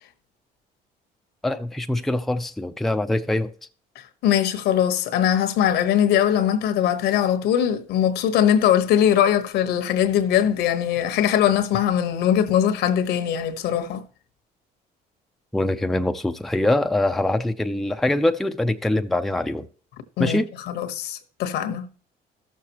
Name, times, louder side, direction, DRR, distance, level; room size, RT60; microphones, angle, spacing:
voice 1, 1.4-3.5 15.5-19.7 20.2-20.5, left 1 dB, ahead, 0.4 m, -23 dB
voice 2, 4.2-14.0 20.2-20.4 20.7-21.9, left 9 dB, 80° left, 1.1 m, -21 dB
14.0 x 6.5 x 2.9 m
cardioid pair, 110°, 17 cm